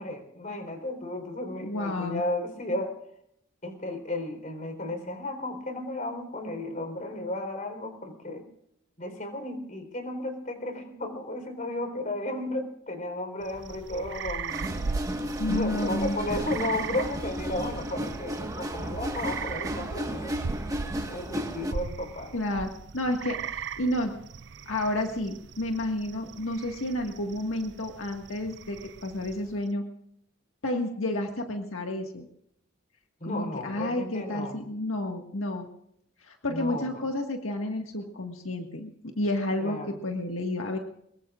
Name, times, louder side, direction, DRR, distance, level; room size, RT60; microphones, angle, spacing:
voice 1, 0.0-2.9 3.6-8.5 9.0-14.8 15.4-20.3 21.1-22.4 33.2-34.6 36.5-36.9 39.6-40.0, left 1 dB, 40° left, 6 dB, 3.8 m, -34 dB
voice 2, 1.6-2.2 15.4-16.2 22.3-24.1 24.7-29.8 30.6-32.3 33.2-35.7 36.2-40.8, left 1 dB, 80° left, 3 dB, 1.7 m, -31 dB
sound 1, 13.4-29.6, right 5 dB, 55° right, 0.5 m, -38 dB
sound 2, 14.5-21.7, equal, 15° right, 1.5 m, -34 dB
23.5 x 22.0 x 2.5 m, 0.73 s
head